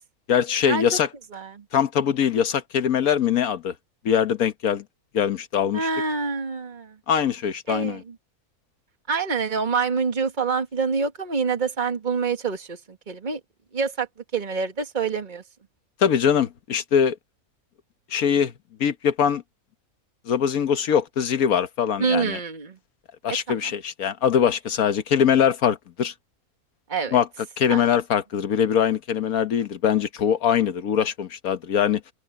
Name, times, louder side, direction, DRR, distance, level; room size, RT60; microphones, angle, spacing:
voice 1, 0.3-1.1 1.7-3.7 4.0-4.8 5.1-5.9 7.1-8.0 16.0-17.1 18.1-18.5 18.8-19.4 20.3-22.4 23.2-26.1 27.1-27.3 27.6-32.0, left 8 dB, 70° left, 1.5 m, -22 dB
voice 2, 1.3-1.6 5.7-7.0 7.7-8.2 9.1-13.4 13.7-14.1 14.3-15.4 22.0-22.8 23.3-23.6 26.9-27.2 27.7-27.9, right 5 dB, 30° right, 1.8 m, -26 dB
omnidirectional pair, 1.6 m